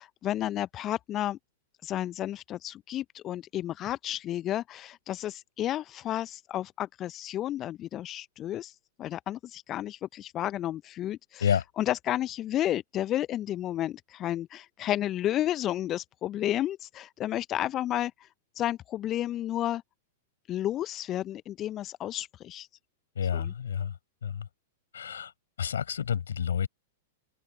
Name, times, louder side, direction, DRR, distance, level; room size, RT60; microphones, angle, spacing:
voice 1, 0.0-1.4 1.8-18.3 18.5-19.8 20.5-22.7 23.3-23.5, left 12 dB, 30° left, 0.6 m, -32 dB
voice 2, 23.2-23.9 24.2-24.5 24.9-25.3 25.6-26.7, left 8 dB, 70° left, 6.3 m, -29 dB
open air
figure-of-eight pair, 100°, 0 cm